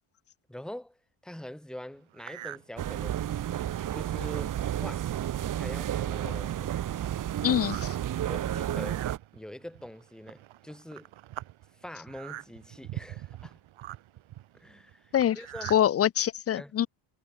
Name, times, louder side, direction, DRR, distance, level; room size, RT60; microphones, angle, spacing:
voice 1, 0.5-3.4 3.9-5.1 5.5-6.8 8.3-9.0 9.3-11.1 11.8-13.6 14.5-15.8 16.5-16.7, left 1 dB, ahead, 1.5 m, -44 dB
sound 1, 2.1-2.7 3.2-3.3 3.9-4.0 4.2-4.5 5.2-5.3 5.7-15.9, right 14 dB, 80° right, 5.8 m, -44 dB
sound 2, 2.8-9.2, right 11 dB, 40° right, 0.9 m, -31 dB
voice 2, 7.4-8.0 15.1-15.4 15.7-16.9, left 10 dB, 30° left, 0.5 m, -25 dB
cardioid pair, 160°, 47 cm